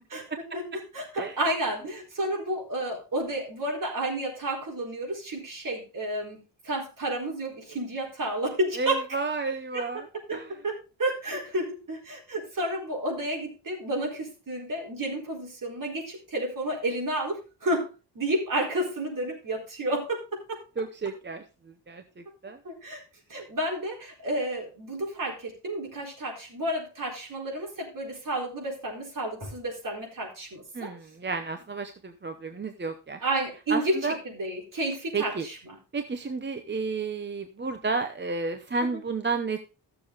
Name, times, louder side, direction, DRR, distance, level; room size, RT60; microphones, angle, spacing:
voice 1, 0.5-6.4 6.6-9.0 9.7-20.6 22.6-23.0 23.3-30.9 33.2-35.6 38.9-39.0, right 1 dB, 50° right, -2 dB, 4.3 m, -31 dB
voice 2, 8.8-10.1 10.3-10.5 20.8-21.4 21.9-22.0 22.4-22.6 30.7-33.2 33.7-34.2 35.1-35.5 35.9-39.6, right 4 dB, 25° right, 7 dB, 0.7 m, -31 dB
14.0 x 6.9 x 3.9 m, 0.32 s
wide cardioid pair, 160°, 42 cm